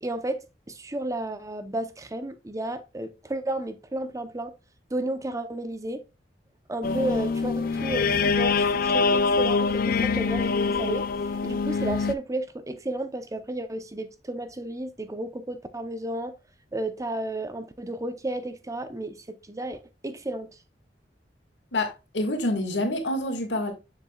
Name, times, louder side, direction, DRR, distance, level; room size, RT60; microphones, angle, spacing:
voice 1, 0.0-4.5 4.9-6.0 6.7-11.1 11.4-16.3 16.7-20.5, right 1 dB, 20° right, 0.7 m, -32 dB
sound 1, 6.8-12.1, left 4 dB, 55° left, 0.5 m, -24 dB
voice 2, 21.7-23.7, left 1 dB, 90° left, 1.8 m, -27 dB
7.1 x 6.8 x 2.3 m
head